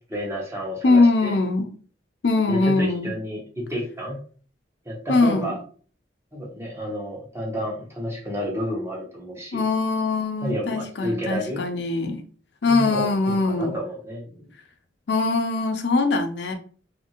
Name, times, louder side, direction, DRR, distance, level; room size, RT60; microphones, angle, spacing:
voice 1, 0.1-1.4 2.5-4.2 4.8-5.6 6.3-9.6 10.4-11.6 12.7-14.5, equal, 15° right, 0.9 m, -30 dB
voice 2, 0.8-1.7 2.2-3.1 5.1-5.5 9.5-12.2 12.6-13.7 15.1-16.5, left 3 dB, 70° left, 0.5 m, -22 dB
2.8 x 2.6 x 2.8 m
head